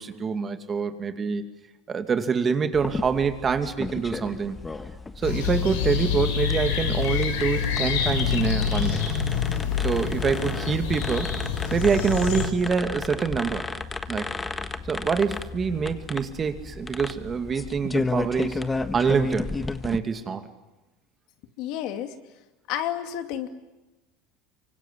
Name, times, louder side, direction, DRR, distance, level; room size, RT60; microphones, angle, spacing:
voice 1, 0.0-1.4 1.9-4.6 5.2-9.0 9.8-11.3 11.7-13.7 14.1-14.3 14.9-18.6 18.9-19.5 19.8-20.4, right 6 dB, 30° right, 8 dB, 2.3 m, -26 dB
sound 1, 2.7-20.0, left 3 dB, 15° left, 1.5 m, -34 dB
sound 2, 5.2-12.5, left 7 dB, 85° left, 7.0 m, -26 dB
Musical instrument, 9.7-16.1, left 6 dB, 30° left, 2.9 m, -43 dB
voice 2, 21.6-22.2 22.7-23.5, left 11 dB, 65° left, 7 dB, 2.5 m, -30 dB
25.0 x 24.5 x 9.9 m, 1.1 s
supercardioid pair, 115°, 0 cm